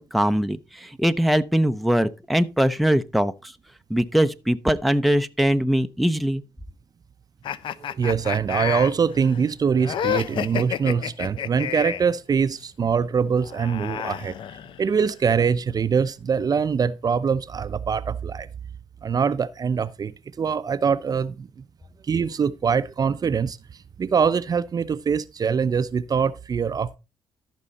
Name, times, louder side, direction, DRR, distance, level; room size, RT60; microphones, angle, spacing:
voice 1, 0.0-3.3 3.9-6.4, equal, ahead, 0.7 m, -21 dB
sound 1, 7.4-12.1 13.3-15.0, left 10 dB, 65° left, 0.6 m, -30 dB
voice 2, 7.8-14.3 14.8-18.5 19.0-21.5 22.0-23.6 24.0-27.0, right 6 dB, 45° right, 0.7 m, -23 dB
13.5 x 5.5 x 4.1 m
supercardioid pair, 65°, 9 cm